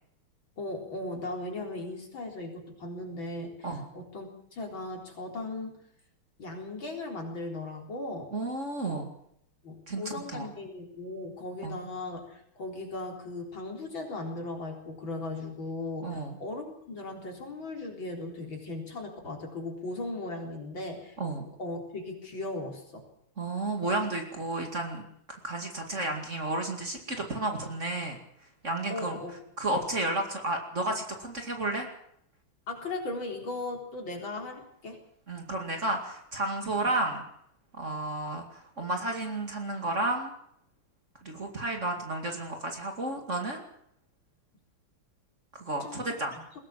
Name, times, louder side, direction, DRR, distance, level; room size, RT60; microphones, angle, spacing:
voice 1, 0.6-3.7 3.9-5.9 6.4-8.3 9.6-21.2 21.6-23.1 28.9-29.3 32.7-35.0 45.8-46.4, left 2 dB, 60° left, 1 dB, 4.8 m, -37 dB
voice 2, 8.3-9.1 9.9-10.5 11.6-11.8 16.0-16.4 21.2-21.5 23.4-25.0 25.3-28.2 28.6-29.2 29.6-31.9 35.3-37.2 37.7-40.3 41.2-43.6 45.5-46.4, right 2 dB, 35° right, 3 dB, 2.5 m, -32 dB
21.0 x 17.5 x 7.6 m, 0.73 s
omnidirectional pair, 2.4 m